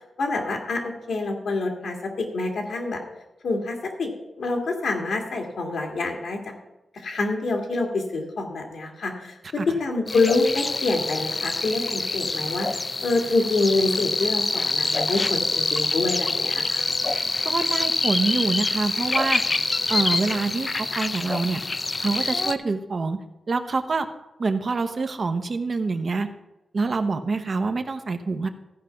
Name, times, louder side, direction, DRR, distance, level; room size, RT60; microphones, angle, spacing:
voice 1, 0.2-3.0 3.4-4.1 4.4-6.5 6.9-12.7 13.0-16.9, left 3 dB, 80° left, 2 dB, 1.9 m, -26 dB
sound 1, 10.1-22.5, left 3 dB, 35° left, 0.5 m, -26 dB
voice 2, 17.4-19.4 19.9-21.6 22.0-23.2 23.5-24.1 24.4-26.3 26.7-28.5, right 4 dB, 50° right, 8 dB, 0.8 m, -26 dB
14.5 x 5.0 x 5.7 m, 1.0 s
wide cardioid pair, 105°, 0 cm